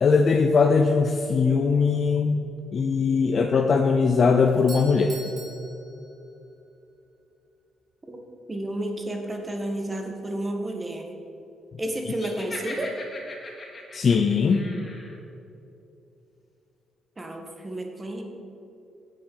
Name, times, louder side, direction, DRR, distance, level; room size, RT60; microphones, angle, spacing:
voice 1, 0.0-2.4 2.7-5.1 12.1-12.2 13.9-14.7, left 5 dB, 50° left, 3 dB, 0.7 m, -20 dB
Doorbell, 4.5-6.6, right 2 dB, 50° right, 1.9 m, -44 dB
voice 2, 8.5-11.1 11.8-12.9 17.2-18.2, right 1 dB, 20° right, 3 dB, 1.6 m, -31 dB
Laughter, 12.1-15.2, left 2 dB, 35° left, 2.3 m, -40 dB
9.1 x 7.9 x 5.5 m, 2.8 s
cardioid pair, 90°, 0 cm